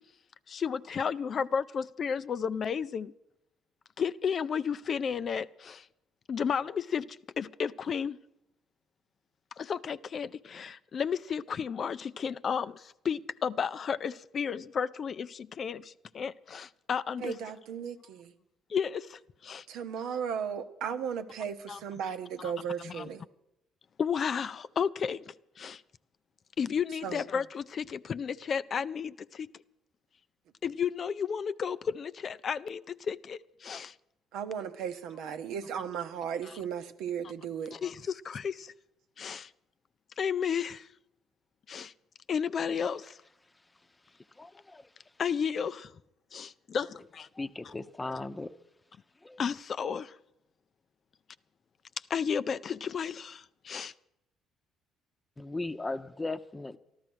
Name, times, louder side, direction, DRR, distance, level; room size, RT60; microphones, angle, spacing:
voice 1, 0.5-3.1 4.0-5.9 6.3-7.1 7.4-8.2 9.6-17.3 18.7-19.7 21.7-21.8 22.4-22.5 22.8-23.1 24.0-25.8 26.6-29.5 30.6-33.9 37.7-38.7 39.2-39.5 40.2-40.9 41.7-41.9 42.3-43.2 45.2-45.9 46.3-47.3 47.6-47.7 48.2-48.3 49.4-50.1 52.1-53.9, left 7 dB, 50° left, 0.4 m, -33 dB
voice 2, 17.2-18.3 19.7-23.2 27.0-27.2 34.3-37.8, right 7 dB, 70° right, 0.8 m, -36 dB
voice 3, 44.4-44.8 47.4-48.6 49.2-49.4 55.4-56.8, left 2 dB, 20° left, 0.8 m, -37 dB
13.5 x 12.0 x 6.2 m
hypercardioid pair, 55°, 0 cm